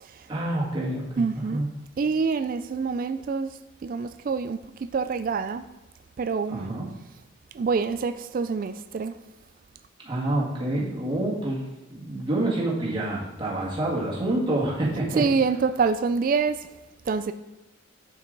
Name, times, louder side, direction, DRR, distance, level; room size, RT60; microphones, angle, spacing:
voice 1, 0.3-1.2 1.5-1.7 6.5-6.9 10.0-11.6 11.9-15.2, right 1 dB, 25° right, 1.8 m, -27 dB
voice 2, 1.2-1.6 2.0-5.7 6.2-6.8 7.5-9.2 15.2-16.7 17.0-17.3, right 5 dB, 40° right, 0.3 m, -26 dB
7.0 x 6.5 x 3.9 m
head